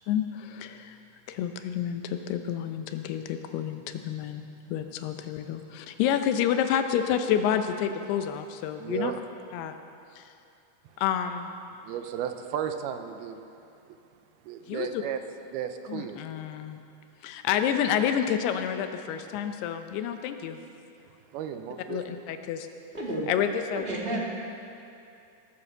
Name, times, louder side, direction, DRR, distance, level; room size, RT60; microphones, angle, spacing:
voice 1, 0.1-1.0 1.3-9.1 9.5-9.7 10.2-10.3 11.0-11.5 14.7-15.0 15.9-16.8 17.2-20.6 21.9-22.7 23.3-23.8 24.1-24.3, left 9 dB, 85° left, 7 dB, 2.9 m, -29 dB
voice 2, 8.8-9.2 10.9-11.0 11.8-13.5 13.9-14.0 14.4-15.2 15.5-16.2 21.3-22.0, right 9 dB, 80° right, 8 dB, 2.6 m, -34 dB
voice 3, 22.9-23.3 23.7-24.3, right 2 dB, 25° right, -3 dB, 1.3 m, -31 dB
20.0 x 8.6 x 6.6 m, 2.6 s
omnidirectional pair, 4.6 m